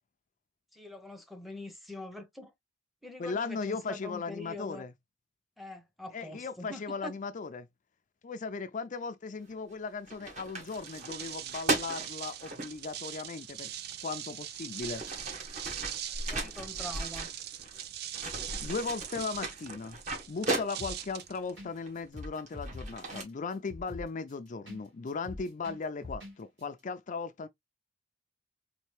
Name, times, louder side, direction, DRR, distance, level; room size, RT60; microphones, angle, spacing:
voice 1, 0.7-2.5 3.0-4.8 5.6-7.1 16.1-17.3, left 1 dB, ahead, 0.8 m, -44 dB
voice 2, 3.2-4.9 6.1-7.7 8.2-13.7 14.0-15.0 18.6-20.0 20.3-27.5, left 4 dB, 45° left, 0.4 m, -37 dB
sound 1, 9.5-9.7 10.1-12.7 13.8-13.9 14.5-17.8 18.1-21.1 21.8-23.2, right 2 dB, 45° right, 1.5 m, -37 dB
sound 2, 10.6-22.1, right 11 dB, 60° right, 0.4 m, -42 dB
sound 3, 20.8-21.2 21.6-21.7 22.0-24.8 25.1-26.3 26.6-26.7, left 2 dB, 75° right, 2.6 m, -43 dB
4.2 x 2.6 x 3.3 m
head